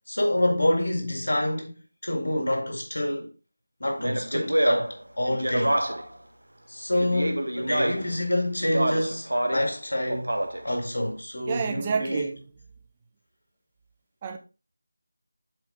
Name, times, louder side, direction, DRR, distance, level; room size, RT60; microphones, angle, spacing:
voice 1, 0.1-1.7 2.0-3.3 3.8-5.8 6.7-10.4 10.6-12.3, left 1 dB, 70° left, 1.8 m, -27 dB
Speech, 4.0-6.2 7.0-8.2 8.6-9.7 10.1-10.7, right 1 dB, 85° right, 1.3 m, -27 dB
voice 2, 11.5-12.4 14.2-14.4, right 5 dB, 20° right, 0.6 m, -29 dB
7.8 x 4.3 x 3.6 m
figure-of-eight pair, 170°, 0 cm